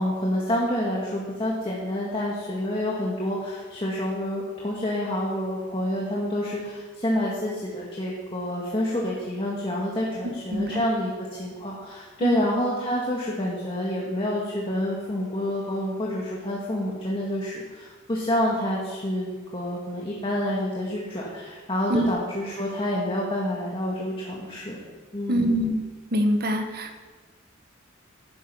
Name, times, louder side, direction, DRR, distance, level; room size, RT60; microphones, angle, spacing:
voice 1, 0.0-24.8 25.1-25.6, left 1 dB, 25° left, -4 dB, 1.7 m, -28 dB
voice 2, 10.5-10.9 12.2-12.4 21.9-22.1 25.3-25.8 26.1-27.0, equal, 50° right, 5 dB, 1.3 m, -24 dB
11.5 x 10.0 x 5.6 m, 1.4 s
head